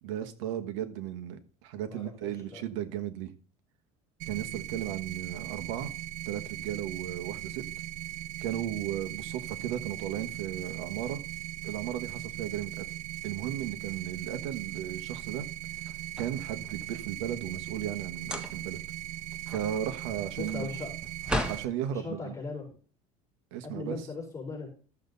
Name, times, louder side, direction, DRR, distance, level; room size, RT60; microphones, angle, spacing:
voice 1, 0.0-3.3 4.3-5.9 6.2-7.6 8.4-11.2 11.6-12.8 13.2-15.4 16.2-18.8 19.5-20.7 21.5-22.3 23.5-24.0, right 11 dB, 90° right, 9 dB, 1.3 m, -35 dB
voice 2, 1.9-2.6 20.4-20.9 21.8-22.6 23.6-24.7, left 3 dB, 20° left, -2 dB, 4.8 m, -39 dB
sound 1, 4.2-21.6, right 13 dB, 60° right, 0.6 m, -39 dB
sound 2, 15.8-16.9 18.2-18.8 19.2-21.7, equal, 5° right, 1.5 m, -36 dB
13.0 x 6.9 x 4.0 m, 0.40 s
cardioid pair, 125°, 16 cm